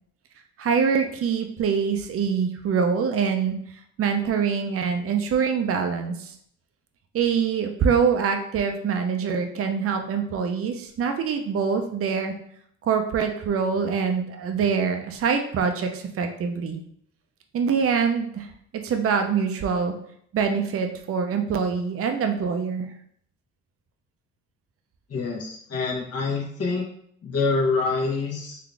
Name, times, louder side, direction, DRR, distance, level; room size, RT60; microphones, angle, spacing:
voice 1, 0.6-3.6 4.0-6.3 7.1-12.3 12.8-16.8 17.5-18.5 18.7-19.9 20.3-22.9, right 6 dB, 50° right, 5 dB, 0.6 m, -24 dB
voice 2, 25.1-26.8 27.2-28.6, left 4 dB, 55° left, -2 dB, 1.3 m, -26 dB
4.0 x 2.7 x 3.3 m, 0.66 s
cardioid pair, 90°, 30 cm